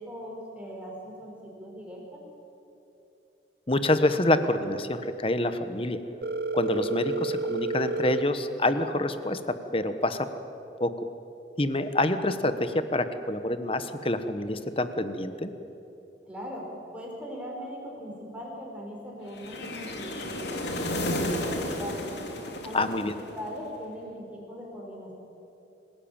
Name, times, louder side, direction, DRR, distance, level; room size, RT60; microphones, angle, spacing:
voice 1, 0.0-2.2 16.3-22.1 22.6-23.0 23.3-25.1, equal, 5° right, -2 dB, 5.5 m, -40 dB
voice 2, 3.7-6.0 6.5-9.4 9.7-10.3 10.8-11.1 11.6-15.5 22.7-23.1, left 1 dB, 30° left, 10 dB, 1.2 m, -27 dB
Telephone, 6.2-8.2, right 4 dB, 60° right, 0.8 m, -30 dB
sound 1, 19.3-23.6, left 1 dB, 70° left, 2.9 m, -32 dB
27.0 x 17.0 x 8.9 m, 3.0 s
head